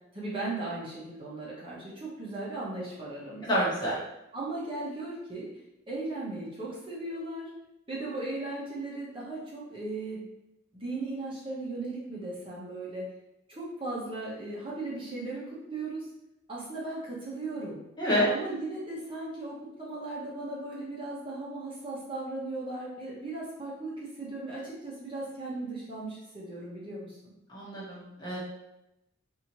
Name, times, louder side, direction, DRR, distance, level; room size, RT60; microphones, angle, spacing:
voice 1, 0.1-3.5 4.3-5.5 5.9-7.5 7.9-10.2 10.7-13.1 13.5-16.1 16.5-17.8 18.3-27.3, right 2 dB, 25° right, -6 dB, 1.0 m, -37 dB
voice 2, 3.4-4.0 18.0-18.3 27.5-28.4, equal, 20° left, -7 dB, 1.1 m, -28 dB
4.1 x 2.7 x 3.0 m, 0.89 s
head